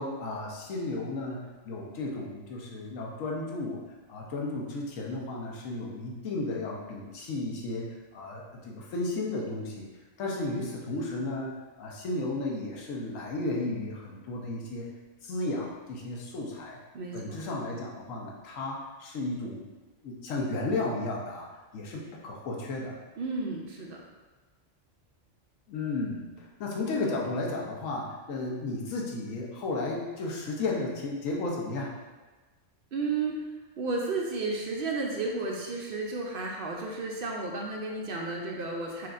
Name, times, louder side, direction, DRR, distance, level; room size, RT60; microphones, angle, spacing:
voice 1, 0.0-3.8 4.1-7.9 8.1-9.9 10.2-11.5 11.8-14.9 15.2-16.8 17.1-19.7 20.0-21.5 21.7-23.0 25.7-31.9, left 2 dB, 90° left, -2 dB, 1.1 m, -33 dB
voice 2, 16.9-17.4 23.2-24.0 32.9-33.4 33.8-39.1, right 3 dB, 60° right, -1 dB, 0.6 m, -32 dB
6.1 x 2.5 x 2.4 m, 1.2 s
omnidirectional pair, 1.3 m